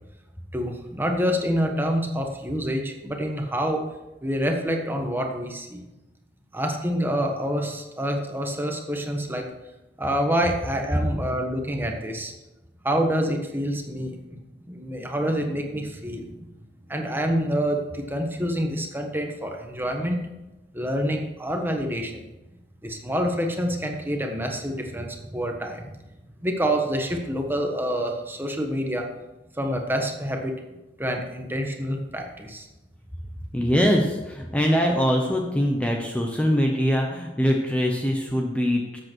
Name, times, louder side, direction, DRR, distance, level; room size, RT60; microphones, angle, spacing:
voice 1, 0.5-3.8 4.2-5.8 6.5-9.5 10.0-12.3 12.8-14.4 14.7-16.3 16.9-20.2 20.7-22.3 22.8-25.9 26.4-29.1 29.6-30.5 31.0-32.7, equal, 10° right, 3 dB, 1.3 m, -27 dB
voice 2, 33.5-39.0, equal, 5° left, 1 dB, 1.0 m, -23 dB
12.5 x 7.9 x 4.6 m, 1.0 s
head